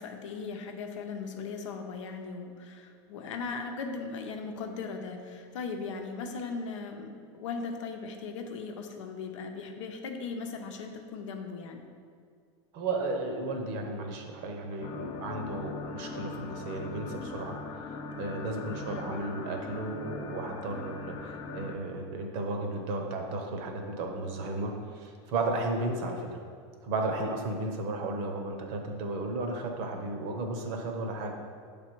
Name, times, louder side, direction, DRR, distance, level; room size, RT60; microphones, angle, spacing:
voice 1, 0.0-11.8 18.9-19.0, left 4 dB, 85° left, 4 dB, 0.7 m, -38 dB
voice 2, 12.7-17.6 18.2-26.4 26.8-31.3, right 2 dB, 50° right, 3 dB, 0.9 m, -34 dB
sound 1, 14.8-21.8, left 4 dB, 30° left, 0.5 m, -40 dB
7.1 x 3.4 x 4.5 m, 2.2 s
supercardioid pair, 130°, 16 cm